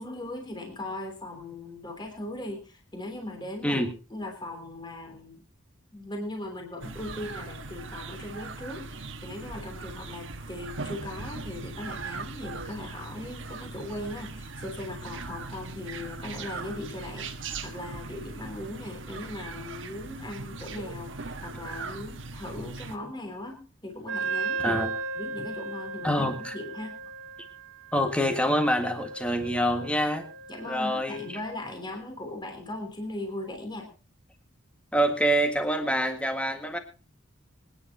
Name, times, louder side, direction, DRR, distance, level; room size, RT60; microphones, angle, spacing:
voice 1, 0.0-3.8 4.1-5.4 5.9-24.8 25.1-26.9 30.5-33.9, left 1 dB, 20° left, 3 dB, 3.3 m, -39 dB
sound 1, 6.8-23.0, right 3 dB, 70° right, 1.3 m, -39 dB
Wind instrument woodwind instrument, 24.1-31.4, right 4 dB, 90° right, 1.0 m, -36 dB
voice 2, 24.6-24.9 26.0-26.5 27.9-30.3 30.7-31.3 34.9-36.8, equal, 5° left, 5 dB, 1.8 m, -26 dB
25.5 x 10.0 x 2.9 m, 0.34 s
head